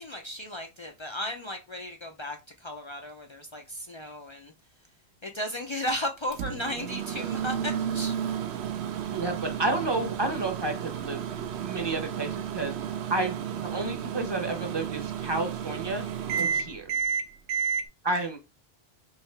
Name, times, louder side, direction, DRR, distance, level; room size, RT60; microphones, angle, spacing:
voice 1, 0.0-4.5 5.2-8.2, left 1 dB, 50° left, 0.3 m, -35 dB
Microwave oven, 6.3-17.8, right 7 dB, 85° right, 0.9 m, -32 dB
voice 2, 9.1-11.2 11.6-12.7 13.1-16.0 16.4-16.9 18.0-18.4, right 2 dB, 30° right, 0.7 m, -30 dB
3.1 x 2.7 x 4.4 m
omnidirectional pair, 1.1 m